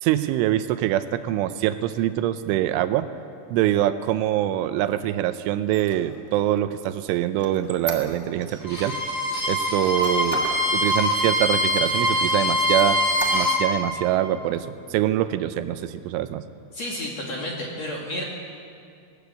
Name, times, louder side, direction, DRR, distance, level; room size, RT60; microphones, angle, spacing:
voice 1, 0.0-3.1 3.5-9.0 9.5-10.4 10.7-13.0 13.3-16.5, right 13 dB, 85° right, 11 dB, 3.2 m, -24 dB
Squeak, 5.6-8.6 9.1-10.7 11.1-11.2 11.7-12.3 12.7-13.8, right 3 dB, 65° right, 0.7 m, -37 dB
Bowed string instrument, 8.6-13.6, left 1 dB, 15° left, 2.3 m, -23 dB
voice 2, 16.7-18.2, left 1 dB, 45° left, -2 dB, 2.6 m, -31 dB
20.0 x 19.0 x 8.3 m, 2.4 s
omnidirectional pair, 5.6 m